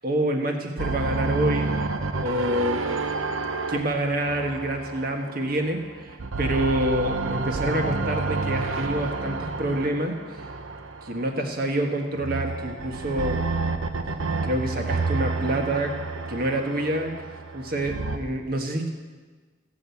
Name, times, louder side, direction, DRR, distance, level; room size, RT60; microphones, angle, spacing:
voice 1, 0.0-1.7 2.2-2.9 3.7-10.5 11.0-13.4 14.4-15.9 16.3-17.1 17.5-18.9, right 1 dB, 45° right, 3 dB, 1.5 m, -27 dB
sound 1, 0.8-5.7 6.1-11.4 12.2-18.2, right 3 dB, 80° right, 0.8 m, -29 dB
16.0 x 6.2 x 8.3 m, 1.4 s
head